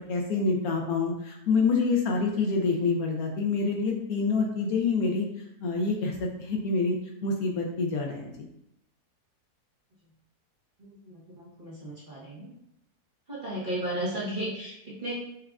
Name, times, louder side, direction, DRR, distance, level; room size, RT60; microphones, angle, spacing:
voice 1, 0.1-5.3 5.6-7.0 7.2-8.3, left 4 dB, 70° left, 1 dB, 1.0 m, -27 dB
voice 2, 10.8-12.5 13.3-15.2, right 1 dB, 35° right, -8 dB, 1.0 m, -34 dB
6.1 x 2.4 x 2.3 m, 0.80 s
omnidirectional pair, 1.8 m